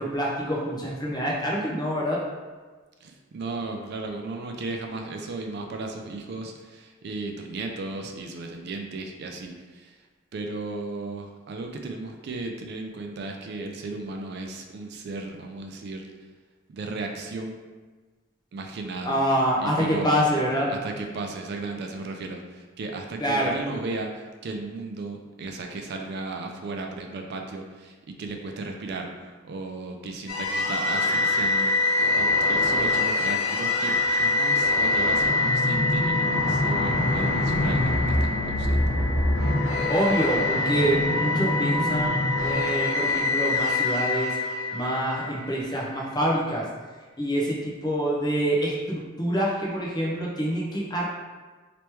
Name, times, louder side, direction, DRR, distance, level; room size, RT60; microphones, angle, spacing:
voice 1, 0.0-2.2 19.1-20.7 23.2-23.6 39.9-44.4 44.7-46.7 47.2-51.0, equal, 20° left, -4 dB, 0.6 m, -26 dB
voice 2, 3.0-10.0 10.3-16.1 16.7-17.5 18.5-19.2 19.6-20.3 20.7-38.9, right 3 dB, 55° right, 3 dB, 0.3 m, -35 dB
sound 1, 30.3-45.4, left 2 dB, 85° left, 0.6 m, -24 dB
3.0 x 3.0 x 3.3 m, 1.4 s
head